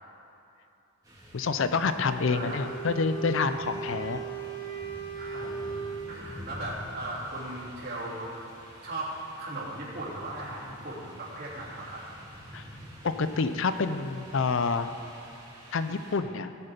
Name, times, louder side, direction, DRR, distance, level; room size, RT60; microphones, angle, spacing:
sound 1, 1.0-16.2, equal, 15° right, 2.3 m, -48 dB
voice 1, 1.3-4.2 12.5-12.6 13.0-14.9 15.7-16.5, left 4 dB, 60° left, 10 dB, 0.5 m, -28 dB
Wind instrument woodwind instrument, 2.1-6.5, right 6 dB, 15° left, 1.8 m, -38 dB
voice 2, 2.2-2.6 5.1-5.6 6.1-8.3 8.8-12.1, right 1 dB, 45° right, -7 dB, 3.3 m, -37 dB
16.5 x 8.7 x 5.2 m, 2.7 s
head